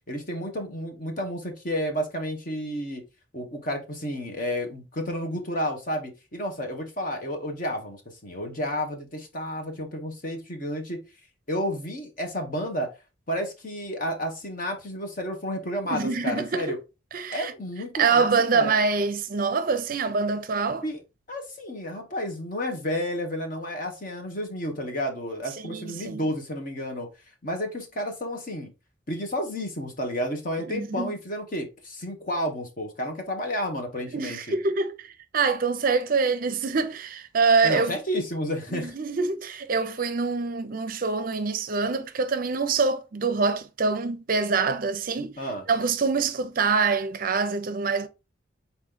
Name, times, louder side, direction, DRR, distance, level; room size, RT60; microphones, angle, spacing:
voice 1, 0.1-3.0 3.3-11.0 11.5-12.9 13.3-16.8 17.3-18.7 20.8-21.0 21.3-27.1 27.4-28.7 29.1-34.6 37.6-38.9 45.4-45.6, equal, 45° left, 1.2 m, -31 dB
voice 2, 15.9-16.7 17.1-17.5 17.9-20.8 25.6-26.2 30.7-31.1 34.1-38.0 38.7-45.4 45.7-48.1, right 4 dB, 45° right, 0.5 m, -25 dB
4.1 x 3.1 x 3.8 m
head